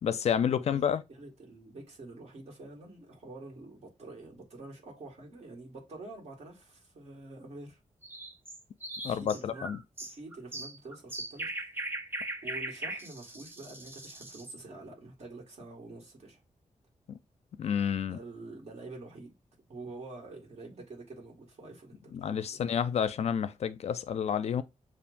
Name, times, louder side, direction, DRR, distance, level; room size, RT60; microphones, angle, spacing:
voice 1, 0.0-1.0 9.0-9.8 17.1-17.2 17.6-18.2 22.1-24.6, left 8 dB, 55° left, 0.4 m, -30 dB
voice 2, 1.1-7.8 9.0-9.7 10.0-11.5 12.4-16.4 18.0-19.3 19.7-22.7, right 2 dB, 60° right, 1.8 m, -47 dB
sound 1, 8.0-14.6, right 2 dB, 15° right, 0.6 m, -39 dB
7.0 x 2.5 x 2.5 m
wide cardioid pair, 170°, 13 cm